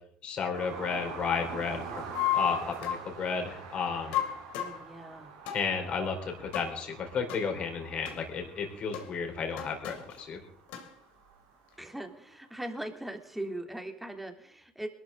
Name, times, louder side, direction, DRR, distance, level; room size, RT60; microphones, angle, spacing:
voice 1, 0.2-2.0 2.3-4.2 5.5-10.4, left 5 dB, 50° left, 3 dB, 4.4 m, -33 dB
sound 1, 0.5-12.0 13.4-13.5, right 6 dB, 90° right, 2.8 m, -45 dB
sound 2, 2.1-3.1 4.1-4.8 5.5-5.7 6.5-6.8 7.3-7.4 8.1-8.2 8.9-9.1 9.6-10.2 10.7-10.9, left 10 dB, 75° left, 2.8 m, -32 dB
voice 2, 4.5-5.3 11.8-14.9, right 1 dB, 5° right, 4 dB, 3.2 m, -40 dB
22.0 x 13.0 x 3.9 m, 0.67 s
supercardioid pair, 70°, 2 cm